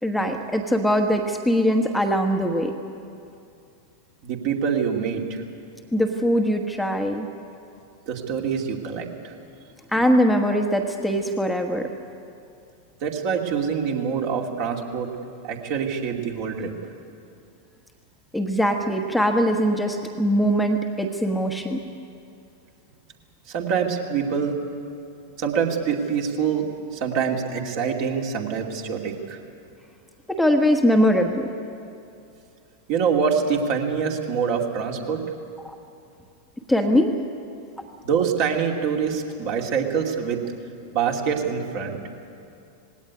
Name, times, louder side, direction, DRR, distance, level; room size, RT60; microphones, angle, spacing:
voice 1, 0.0-2.7 5.9-7.3 9.9-11.9 18.3-21.8 30.3-31.5 35.6-35.7 36.7-37.1, equal, ahead, 3 dB, 1.3 m, -21 dB
voice 2, 4.2-5.4 8.1-9.3 13.0-15.1 15.4-16.7 23.5-24.6 25.4-29.4 32.9-35.2 38.0-40.4 40.9-42.0, right 6 dB, 45° right, 1 dB, 2.5 m, -25 dB
19.5 x 17.5 x 9.6 m, 2.6 s
figure-of-eight pair, 90°, 0 cm